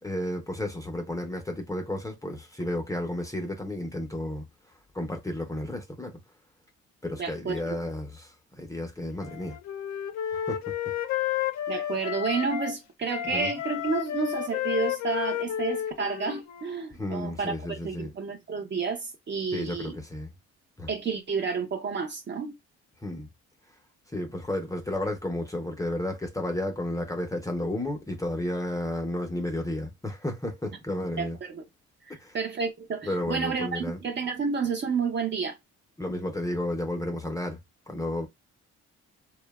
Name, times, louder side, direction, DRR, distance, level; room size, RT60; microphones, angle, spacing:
voice 1, 0.0-4.4 4.9-6.2 7.0-9.6 10.3-10.6 13.3-13.5 17.0-18.1 19.5-20.3 20.8-20.9 23.0-23.3 24.1-31.4 32.1-32.4 33.0-34.0 36.0-37.6 37.9-38.3, left 1 dB, 10° left, 0.5 m, -32 dB
voice 2, 7.2-7.8 11.7-20.0 20.9-22.6 31.2-31.6 32.1-35.6, right 5 dB, 40° right, 0.6 m, -30 dB
Wind instrument woodwind instrument, 9.2-12.7 13.1-16.8, left 11 dB, 70° left, 0.4 m, -32 dB
2.6 x 2.1 x 2.2 m
cardioid pair, 90°, 30 cm